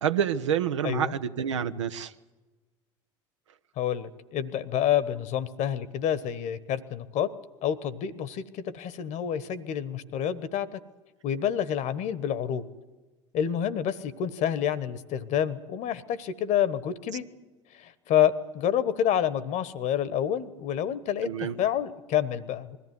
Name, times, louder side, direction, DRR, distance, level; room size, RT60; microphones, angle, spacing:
voice 1, 0.0-2.1 21.2-21.5, right 8 dB, 80° right, 10 dB, 0.9 m, -28 dB
voice 2, 0.8-1.1 3.8-7.3 7.6-10.8 11.2-12.6 13.3-17.2 17.7-22.8, left 9 dB, 50° left, 17 dB, 1.3 m, -28 dB
21.5 x 14.5 x 9.6 m, 1.3 s
figure-of-eight pair, 70°, 15 cm